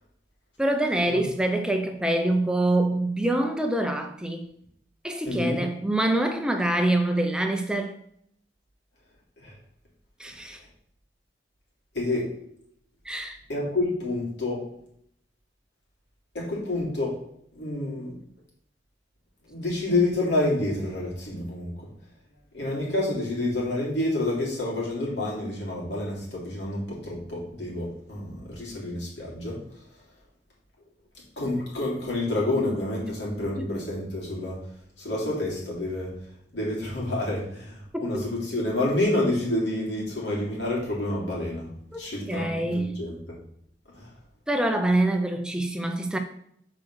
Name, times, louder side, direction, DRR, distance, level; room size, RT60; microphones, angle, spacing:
voice 1, 0.6-4.5 5.0-8.0 10.2-10.6 13.1-13.4 33.6-33.7 37.9-38.2 41.9-42.0 42.3-43.0 44.5-46.2, right 1 dB, 5° right, 0.5 m, -25 dB
voice 2, 5.2-5.6 9.4-9.5 11.9-12.3 13.5-14.6 16.3-17.2 17.5-18.1 19.5-21.9 22.5-29.6 31.4-34.6 35.0-36.1 36.5-41.7 42.0-43.3 43.9-44.1, left 2 dB, 80° left, 3.3 m, -28 dB
6.2 x 4.9 x 6.2 m
head